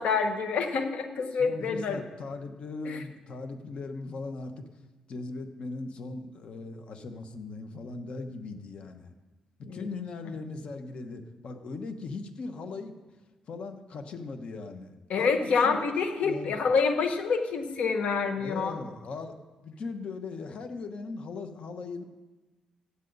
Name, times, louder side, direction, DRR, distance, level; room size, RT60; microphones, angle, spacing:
voice 1, 0.0-2.0 2.9-3.0 9.7-9.8 15.1-18.7, left 5 dB, 65° left, 6 dB, 1.3 m, -27 dB
voice 2, 1.4-4.7 5.1-9.1 9.6-13.0 13.5-15.9 16.2-16.6 18.4-22.0, left 3 dB, 50° left, 7 dB, 1.1 m, -39 dB
16.0 x 9.7 x 4.0 m, 1.2 s
cardioid pair, 155°, 2 cm